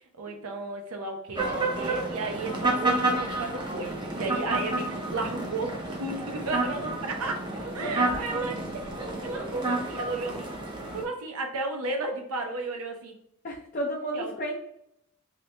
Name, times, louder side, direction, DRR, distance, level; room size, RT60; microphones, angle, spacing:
voice 1, 0.1-5.7 6.0-8.7 9.0-10.5 10.9-13.1 14.1-14.3, right 3 dB, 80° right, 3 dB, 0.7 m, -33 dB
sound 1, 1.3-11.0, right 2 dB, 20° right, 0.5 m, -30 dB
voice 2, 7.8-8.6 13.4-14.6, equal, 35° left, -3 dB, 0.4 m, -33 dB
2.8 x 2.7 x 3.2 m, 0.76 s
head